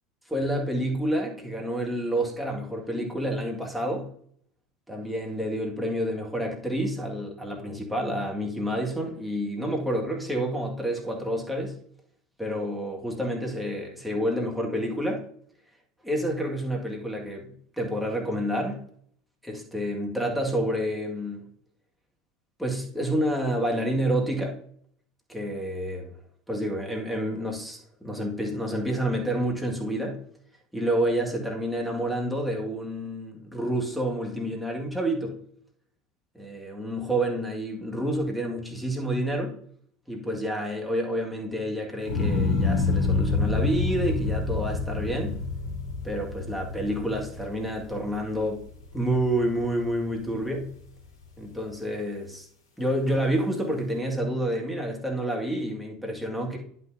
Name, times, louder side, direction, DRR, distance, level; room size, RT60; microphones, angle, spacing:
voice 1, 0.3-4.1 4.9-11.7 12.4-15.2 16.0-18.8 19.4-21.4 22.6-24.6 25.3-26.1 26.5-30.2 30.7-35.4 36.3-39.6 40.1-45.4 46.0-48.6 48.9-50.7 51.4-52.5 52.8-56.6, right 1 dB, ahead, -1 dB, 2.0 m, -29 dB
sound 1, 42.1-48.4 48.8-49.4, left 3 dB, 50° left, 2.4 m, -27 dB
10.5 x 5.8 x 2.8 m, 0.63 s
figure-of-eight pair, 70°, 0 cm